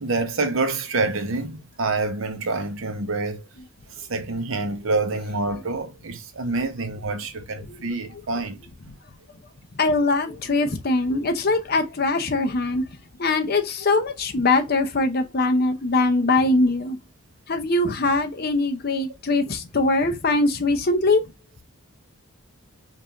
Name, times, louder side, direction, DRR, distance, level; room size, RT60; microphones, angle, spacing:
voice 1, 0.0-3.5 4.0-8.6, right 3 dB, 65° right, 0.7 m, -27 dB
voice 2, 9.8-12.8 13.2-17.0 17.5-21.2, left 2 dB, 45° left, 0.7 m, -22 dB
5.3 x 2.6 x 2.9 m
head